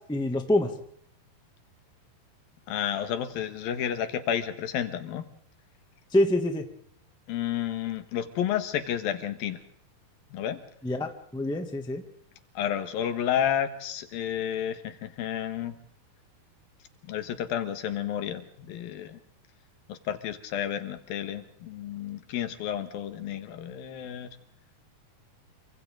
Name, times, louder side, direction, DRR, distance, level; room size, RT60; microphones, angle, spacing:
voice 1, 0.1-0.7 6.1-6.6 10.8-12.0, left 1 dB, 5° left, 5 dB, 0.9 m, -26 dB
voice 2, 2.7-5.3 7.3-9.6 10.3-10.6 12.5-15.8 17.0-19.2 19.9-24.3, left 10 dB, 75° left, 10 dB, 3.2 m, -31 dB
28.5 x 25.0 x 3.8 m, 0.65 s
omnidirectional pair, 4.3 m